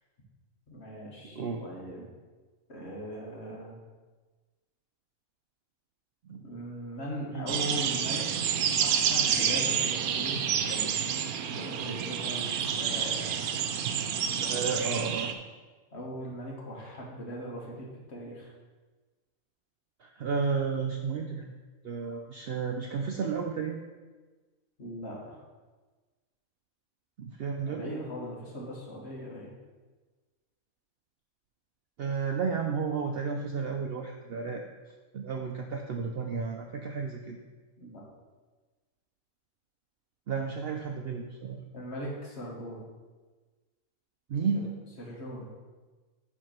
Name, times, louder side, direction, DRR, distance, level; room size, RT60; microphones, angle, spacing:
voice 1, 0.7-2.1 2.7-3.7 6.3-11.0 11.4-13.6 14.3-15.0 15.9-18.5 24.8-25.4 27.6-29.5 37.8-38.0 41.7-42.8 44.5-44.7 45.0-45.5, equal, 50° left, -2 dB, 1.6 m, -40 dB
voice 2, 1.3-1.6 6.3-6.4 7.3-7.5 14.5-15.3 20.0-21.5 21.8-23.8 27.2-27.8 32.0-34.6 35.1-37.4 40.3-41.6 44.3-44.7, right 5 dB, 65° right, 3 dB, 0.6 m, -32 dB
sound 1, 7.5-15.3, right 8 dB, 90° right, 1.1 m, -29 dB
7.6 x 3.6 x 5.8 m, 1.3 s
omnidirectional pair, 1.5 m